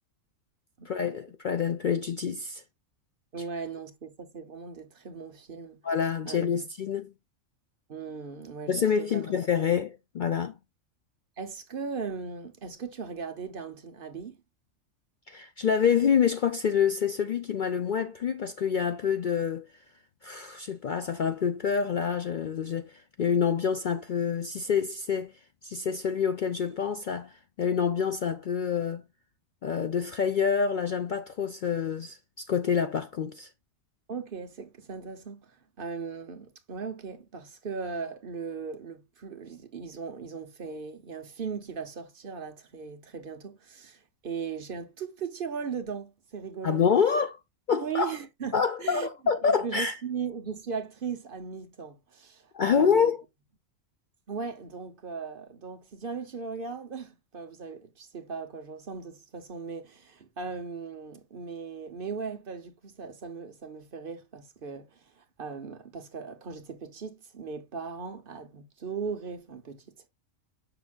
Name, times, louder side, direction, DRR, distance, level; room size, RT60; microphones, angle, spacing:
voice 1, 0.9-2.6 5.8-7.1 8.7-10.5 15.3-19.7 20.2-25.3 25.6-29.0 29.6-33.5 46.6-47.4 47.7-48.1 48.5-50.0 52.5-53.2, left 7 dB, 65° left, 0.5 m, -27 dB
voice 2, 3.3-5.8 6.3-6.5 7.9-9.2 11.4-14.4 34.1-46.8 47.7-49.1 49.4-53.1 54.3-70.1, right 5 dB, 45° right, 1.0 m, -38 dB
6.6 x 6.1 x 2.3 m
omnidirectional pair, 1.4 m